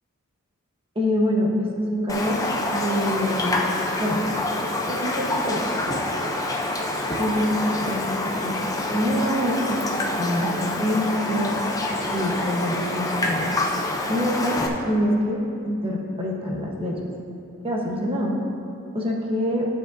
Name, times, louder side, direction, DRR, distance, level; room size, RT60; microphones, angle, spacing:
voice 1, 0.9-2.4 2.7-3.6 4.0-4.2 4.6-6.2 7.2-11.5 12.1-13.4 14.1-14.6 14.8-17.0 17.6-18.3 18.9-19.7, equal, 25° right, -2 dB, 1.2 m, -25 dB
Raindrop, 2.1-14.7, left 2 dB, 15° left, 0.6 m, -26 dB
12.0 x 7.6 x 2.7 m, 2.6 s
head